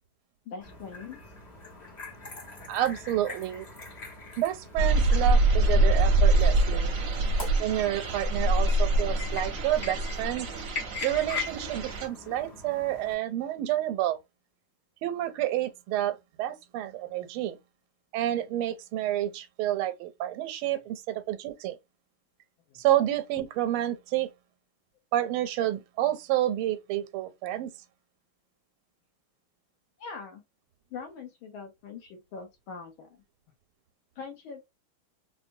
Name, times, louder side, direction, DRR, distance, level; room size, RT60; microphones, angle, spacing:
voice 1, 0.5-1.2 22.7-22.8 30.0-30.4 30.9-33.2 34.2-34.6, left 5 dB, 80° left, 1.7 m, -42 dB
sound 1, 0.6-13.1, left 4 dB, 35° left, 0.7 m, -42 dB
voice 2, 2.7-3.7 4.4-6.9 7.6-10.5 11.0-14.2 15.0-17.6 18.1-21.8 22.8-24.3 25.1-27.7, right 13 dB, 85° right, 1.4 m, -29 dB
sound 2, 4.8-12.1, right 2 dB, 65° right, 0.8 m, -24 dB
4.1 x 2.2 x 2.6 m
omnidirectional pair, 2.3 m